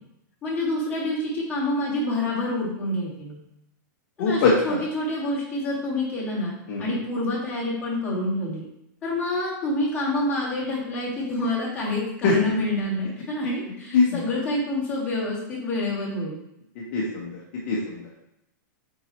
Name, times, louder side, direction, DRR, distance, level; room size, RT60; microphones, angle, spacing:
voice 1, 0.4-3.4 4.2-6.5 6.8-8.6 9.0-16.4, left 1 dB, 10° left, -8 dB, 2.0 m, -27 dB
voice 2, 4.2-4.8 6.7-6.8 12.2-12.3 13.9-14.2 16.9-17.3 17.7-18.2, left 4 dB, 35° left, -4 dB, 1.1 m, -22 dB
7.1 x 4.8 x 3.1 m, 0.82 s
supercardioid pair, 170°, 11 cm